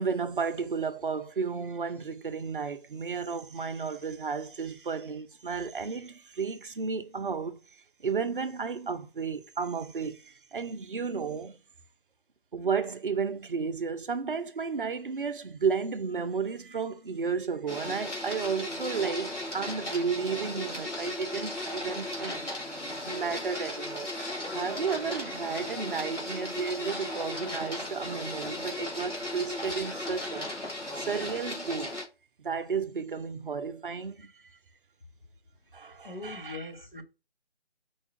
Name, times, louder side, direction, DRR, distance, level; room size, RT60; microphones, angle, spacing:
voice 1, 0.0-11.6 12.5-22.5 23.0-24.1 24.5-30.5 31.0-32.0 32.4-34.6 35.7-36.7, right 5 dB, 50° right, 0.5 m, -33 dB
Printer, 17.7-32.0, left 1 dB, 85° left, 2.0 m, -36 dB
voice 2, 36.0-37.0, left 3 dB, 40° left, 1.0 m, -41 dB
4.5 x 2.3 x 4.3 m
figure-of-eight pair, 155°, 35 cm